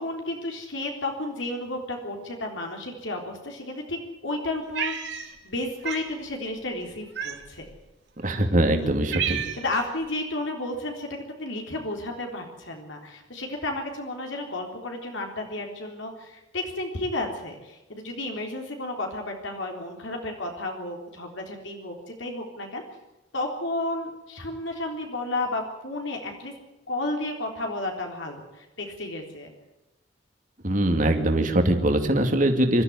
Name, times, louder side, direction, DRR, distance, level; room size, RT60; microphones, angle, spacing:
voice 1, 0.0-7.7 8.2-8.4 8.8-8.9 9.3-22.8 23.3-26.5 26.9-29.5, left 2 dB, 70° left, 2 dB, 3.8 m, -32 dB
Cat, 4.7-5.6 5.8-6.1 7.1-7.7 8.4-8.5 8.8-9.8, right 8 dB, 60° right, 3.1 m, -31 dB
voice 2, 8.2-9.4 30.6-32.8, right 1 dB, 40° right, 5 dB, 2.5 m, -22 dB
25.0 x 14.0 x 9.4 m, 0.97 s
head